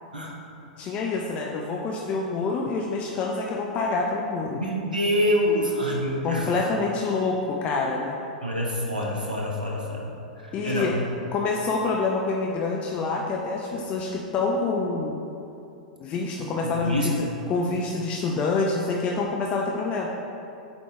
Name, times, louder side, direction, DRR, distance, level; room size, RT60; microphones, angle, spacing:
voice 1, 0.8-4.6 6.2-8.2 10.5-10.9 11.3-15.2 16.0-17.1 17.5-20.1, left 3 dB, 30° left, 0 dB, 0.4 m, -27 dB
voice 2, 4.6-6.5 8.4-10.1 10.4-10.9 16.6-17.1, equal, 80° right, -2 dB, 0.9 m, -26 dB
8.1 x 3.9 x 3.2 m, 2.7 s
figure-of-eight pair, 95°, 4 cm